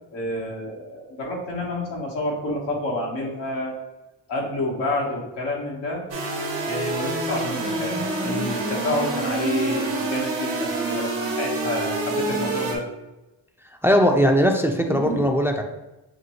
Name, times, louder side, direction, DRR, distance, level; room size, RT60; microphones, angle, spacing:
voice 1, 0.1-3.8 4.3-6.0 6.6-12.8 14.9-15.2, left 1 dB, 85° left, -3 dB, 1.2 m, -29 dB
sound 1, 6.1-12.8, right 2 dB, 90° right, 1.0 m, -27 dB
voice 2, 13.8-15.6, equal, 5° right, 3 dB, 0.5 m, -19 dB
6.2 x 2.2 x 2.9 m, 1.0 s
supercardioid pair, 55°, 43 cm